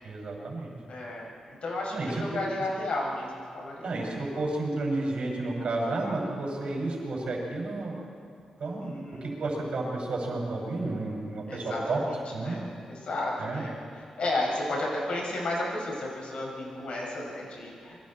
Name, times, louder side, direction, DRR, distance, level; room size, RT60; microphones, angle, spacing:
voice 1, 0.0-0.8 1.9-2.4 3.8-8.0 8.6-8.9 9.2-12.0 12.3-12.5 13.4-13.6, right 2 dB, 60° right, -1 dB, 5.9 m, -31 dB
voice 2, 0.9-1.3 1.6-4.1 8.8-9.3 11.5-13.8 14.2-18.0, left 2 dB, 65° left, -3 dB, 6.2 m, -33 dB
27.0 x 23.0 x 4.4 m, 2.4 s
wide cardioid pair, 130°, 2 cm